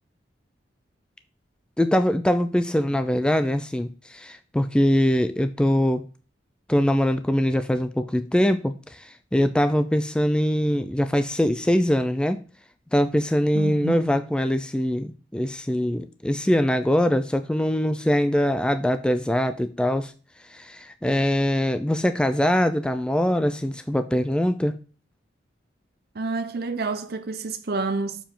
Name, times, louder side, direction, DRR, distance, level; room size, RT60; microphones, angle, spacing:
voice 1, 1.8-6.0 6.7-12.4 12.9-20.1 20.5-24.8, equal, 5° left, 0.3 m, -23 dB
voice 2, 13.5-14.1 26.1-28.2, right 3 dB, 55° right, 0.7 m, -29 dB
7.0 x 4.6 x 3.7 m
head